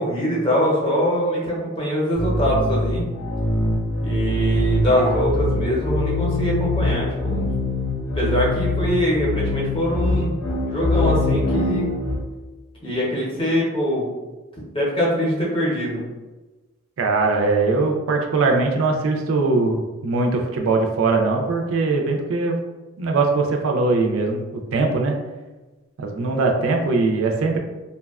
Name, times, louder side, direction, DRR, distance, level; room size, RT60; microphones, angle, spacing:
voice 1, 0.0-3.0 4.0-7.5 8.1-10.4 10.6-11.9 12.8-14.0 14.7-16.0, equal, 25° left, -5 dB, 0.7 m, -23 dB
sound 1, 2.1-12.2, left 2 dB, 70° left, 0.6 m, -23 dB
voice 2, 17.0-22.6 23.0-25.1 26.0-27.6, right 3 dB, 70° right, 2 dB, 0.4 m, -21 dB
2.6 x 2.1 x 2.3 m, 1.2 s
head